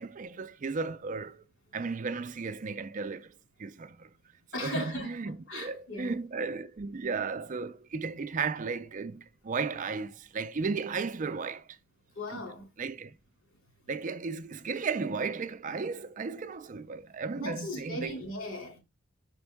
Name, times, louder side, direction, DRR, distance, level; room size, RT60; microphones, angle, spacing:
voice 1, 0.0-1.5 1.7-3.3 3.6-4.1 4.5-11.8 12.3-12.5 12.8-13.2 13.9-18.2, right 4 dB, 40° right, 0.4 m, -35 dB
voice 2, 4.5-5.2 5.5-6.1 12.2-12.7 17.4-18.8, left 1 dB, 65° left, 2.6 m, -37 dB
6.0 x 5.3 x 3.5 m
head